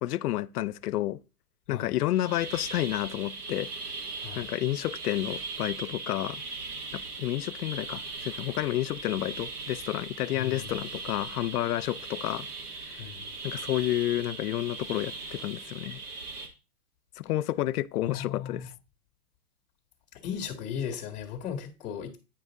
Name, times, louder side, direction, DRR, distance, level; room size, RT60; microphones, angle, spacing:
voice 1, 0.0-1.2 1.7-3.7 4.4-6.4 6.9-12.5 12.8-13.0 13.4-16.0 17.2-18.7, left 14 dB, 85° left, 0.6 m, -30 dB
sound 1, 2.1-16.5, right 4 dB, 90° right, 2.0 m, -39 dB
voice 2, 10.3-10.7 13.0-13.3 18.0-18.7 20.2-22.2, left 8 dB, ahead, 0.5 m, -36 dB
8.7 x 5.5 x 3.7 m
supercardioid pair, 170°, 45 cm